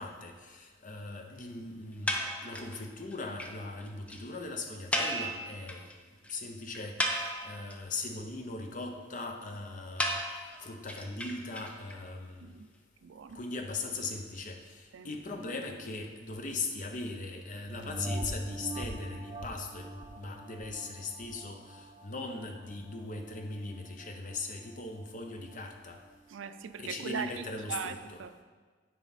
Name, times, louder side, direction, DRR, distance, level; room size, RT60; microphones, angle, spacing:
voice 1, 0.0-5.9 6.3-10.2 10.6-12.5 13.3-19.9 20.1-26.0 26.8-28.2, left 3 dB, 45° left, 4 dB, 0.7 m, -39 dB
sound 1, 2.1-2.8 3.1-3.2 3.4-3.5 3.8-3.9 4.1-4.2 4.9-5.9 6.2-6.3 6.7-7.7 10.0-12.0, equal, 5° left, 0.5 m, -33 dB
voice 2, 13.0-13.4 14.9-15.2 26.3-28.4, right 6 dB, 85° right, 11 dB, 0.4 m, -40 dB
sound 2, 17.7-22.6 23.1-23.2, right 1 dB, 20° right, 0.8 m, -40 dB
9.2 x 4.7 x 4.1 m, 1.4 s
head